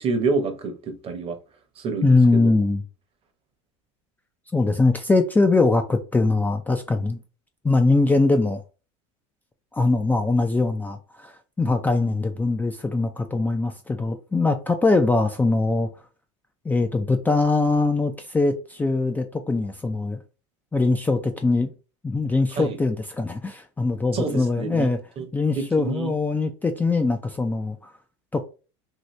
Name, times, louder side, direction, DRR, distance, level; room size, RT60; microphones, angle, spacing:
voice 1, 0.0-1.4 1.8-2.5 22.6-22.8 24.1-24.9 25.2-25.3 25.6-26.1, right 4 dB, 35° right, 0.9 m, -27 dB
voice 2, 2.0-2.8 4.5-7.2 7.6-8.6 9.7-15.9 16.7-20.2 20.7-21.7 22.0-25.0 25.3-27.9 28.3-28.4, left 3 dB, 10° left, 0.4 m, -22 dB
2.8 x 2.7 x 3.2 m
supercardioid pair, 100°, 16 cm